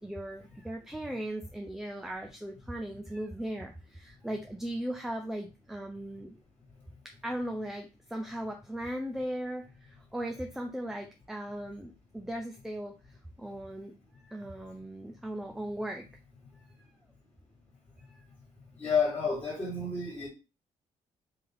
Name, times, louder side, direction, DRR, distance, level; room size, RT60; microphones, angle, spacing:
voice 1, 0.0-6.4 7.0-12.9 13.4-16.1 16.6-16.7 18.1-18.2, right 1 dB, 5° right, 0.5 m, -38 dB
voice 2, 18.8-20.3, left 5 dB, 15° left, 1.6 m, -30 dB
3.5 x 2.8 x 3.6 m
cardioid pair, 100°, 14 cm